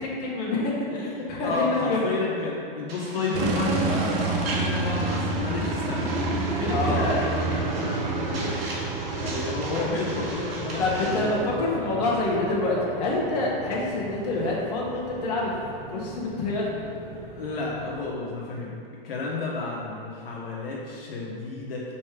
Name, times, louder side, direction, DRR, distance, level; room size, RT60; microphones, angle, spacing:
voice 1, 0.0-2.0 6.7-7.1 10.8-15.5 15.8-16.7, left 2 dB, 45° left, -4 dB, 1.4 m, -27 dB
voice 2, 1.4-8.7 9.2-11.7 16.8-18.8 19.0-21.9, left 3 dB, 75° left, -4 dB, 1.2 m, -31 dB
sound 1, 2.9-11.4, right 2 dB, 80° right, 1.4 m, -38 dB
sound 2, 3.3-18.1, right 3 dB, 25° right, 0.5 m, -30 dB
4.7 x 4.2 x 5.0 m, 2.5 s
hypercardioid pair, 140°, 29 cm